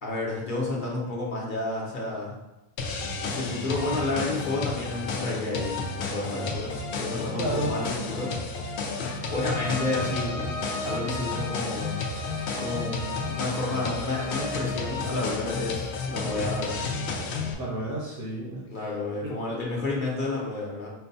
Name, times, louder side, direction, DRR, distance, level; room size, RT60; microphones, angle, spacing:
voice 1, 0.0-2.3 3.2-8.3 9.3-10.5 10.8-12.0 12.6-16.8 18.7-20.9, left 2 dB, 55° left, -3 dB, 0.9 m, -31 dB
sound 1, 2.8-17.5, left 4 dB, 85° left, 0.9 m, -32 dB
voice 2, 7.3-8.0 17.6-18.9 19.2-19.4, right 1 dB, 65° right, -4 dB, 1.0 m, -32 dB
Bowed string instrument, 9.1-14.7, right 1 dB, 15° right, 0.6 m, -38 dB
4.5 x 2.2 x 3.9 m, 1.0 s
omnidirectional pair, 1.1 m